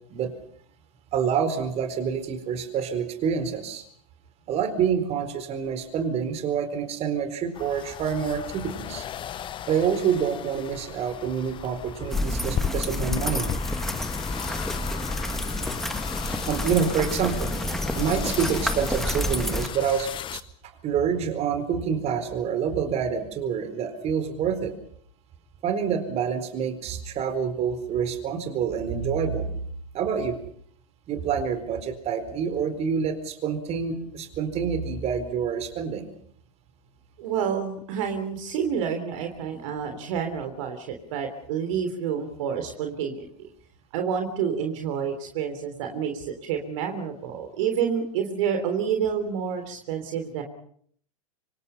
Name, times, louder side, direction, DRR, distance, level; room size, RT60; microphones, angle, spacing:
voice 1, 1.1-3.8 4.5-9.0 9.7-13.5 16.5-17.5 17.9-20.4 20.8-24.7 25.6-29.5 29.9-30.4 31.1-36.1, right 7 dB, 35° right, 9 dB, 4.3 m, -27 dB
sound 1, 7.5-20.4, left 10 dB, 25° left, 1.1 m, -35 dB
sound 2, 12.1-19.7, left 1 dB, ahead, 1.7 m, -29 dB
voice 2, 37.2-40.9 41.1-43.3 43.9-50.4, right 7 dB, 55° right, 5 dB, 3.5 m, -28 dB
26.0 x 25.5 x 5.7 m, 0.63 s
figure-of-eight pair, 95°, 19 cm